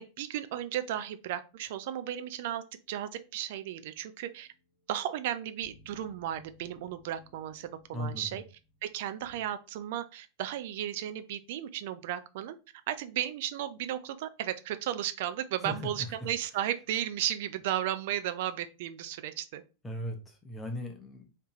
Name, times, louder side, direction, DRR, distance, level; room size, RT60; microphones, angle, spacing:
voice 1, 0.0-4.5 4.9-8.4 8.8-12.6 12.9-19.6, right 11 dB, 50° right, 11 dB, 0.4 m, -34 dB
sound 1, 4.3-9.4, left 1 dB, 55° left, 1.2 m, -61 dB
voice 2, 7.9-8.4 15.6-15.7 16.2-16.3 19.8-21.3, equal, 10° left, 1 dB, 1.0 m, -38 dB
3.4 x 2.8 x 2.9 m, 0.32 s
figure-of-eight pair, 90°, 0 cm